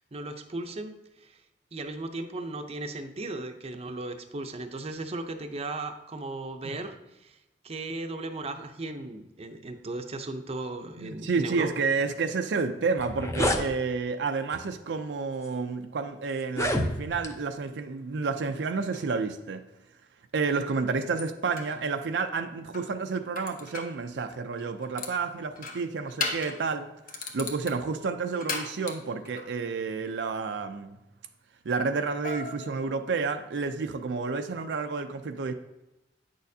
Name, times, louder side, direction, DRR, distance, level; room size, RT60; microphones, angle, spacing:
voice 1, 0.0-1.4 1.7-7.4 7.6-11.8, right 2 dB, 35° right, 0.6 m, -36 dB
voice 2, 11.0-19.6 20.3-26.9 27.3-31.0 31.7-35.5, right 4 dB, 80° right, 0.5 m, -30 dB
sound 1, 12.5-12.6 12.9-13.7 14.5-14.7 15.4-15.5 16.4-17.3, left 1 dB, 15° left, 0.6 m, -28 dB
sound 2, 18.8-19.1 20.7-20.8 21.2-21.8 22.7-24.0 24.6-25.2 25.6-26.6 27.1-29.5 32.2-33.5, left 4 dB, 50° left, 1.0 m, -37 dB
9.0 x 6.4 x 2.7 m
head